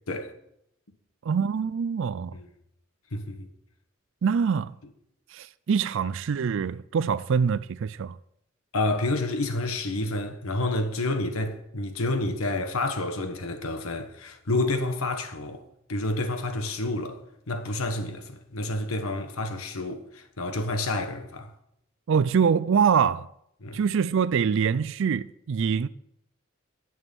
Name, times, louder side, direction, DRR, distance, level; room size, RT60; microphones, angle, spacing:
voice 1, 1.2-2.4 4.2-4.7 5.3-8.2 22.1-23.3 23.7-25.9, right 6 dB, 60° right, 0.4 m, -24 dB
voice 2, 3.1-3.5 8.7-15.6 15.9-17.2 17.5-21.5 23.6-23.8, left 2 dB, 85° left, 1.4 m, -29 dB
11.0 x 6.3 x 9.0 m
head